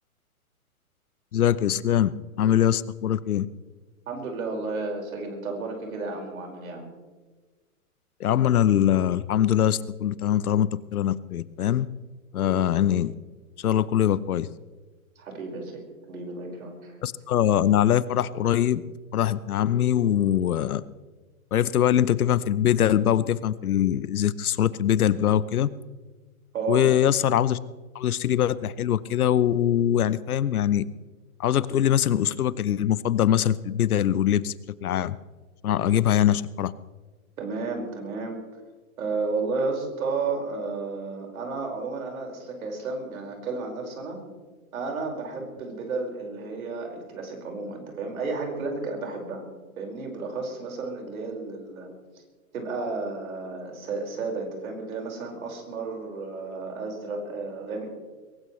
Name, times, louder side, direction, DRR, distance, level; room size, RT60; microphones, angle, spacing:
voice 1, 1.3-2.1 2.4-3.5 8.2-11.9 12.3-13.1 13.6-14.5 17.0-18.8 19.1-20.8 21.5-25.7 26.7-27.6 27.9-30.9 31.4-34.5 34.8-35.1 35.6-36.7, left 10 dB, 80° left, 18 dB, 0.9 m, -22 dB
voice 2, 4.1-6.9 15.2-17.0 26.5-26.9 37.4-38.4 39.0-44.2 44.7-49.5 49.8-51.9 52.5-57.9, right 3 dB, 70° right, 1 dB, 5.4 m, -32 dB
22.5 x 18.0 x 3.2 m, 1.3 s
hypercardioid pair, 145°, 43 cm